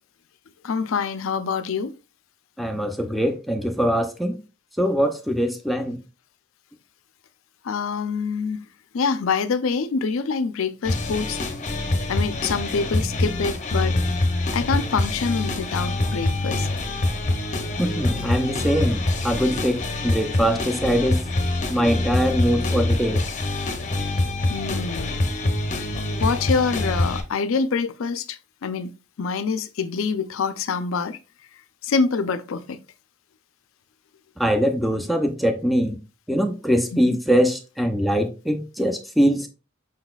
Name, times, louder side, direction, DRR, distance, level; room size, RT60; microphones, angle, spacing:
voice 1, 0.6-1.9 7.6-8.6 8.9-11.4 12.1-14.0 14.5-16.7 24.5-25.1 26.2-28.9 29.2-31.2 31.8-32.8 36.9-37.2, left 5 dB, 70° left, 0.4 m, -25 dB
voice 2, 2.6-4.4 4.8-6.0 17.8-21.2 21.7-23.2 34.4-36.0 36.3-39.5, equal, ahead, 0.5 m, -22 dB
sound 1, 10.8-27.2, left 2 dB, 35° left, 0.7 m, -25 dB
5.7 x 4.0 x 2.3 m
head